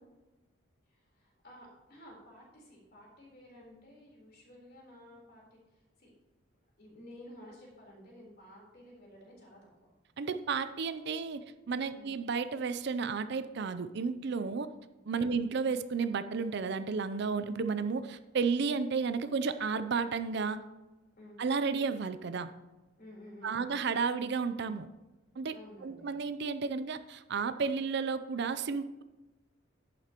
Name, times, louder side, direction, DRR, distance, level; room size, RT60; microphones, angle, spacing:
voice 1, 0.9-6.1 6.8-9.6 11.9-12.1 15.2-15.4 21.2-21.4 23.0-23.8 25.5-26.1, left 1 dB, 45° left, -3 dB, 3.6 m, -53 dB
voice 2, 10.2-14.7 15.1-20.6 21.4-22.5 23.4-24.9 25.4-25.6 25.8-29.0, right 5 dB, 55° right, 11 dB, 0.4 m, -32 dB
11.0 x 9.9 x 2.9 m, 1.1 s
head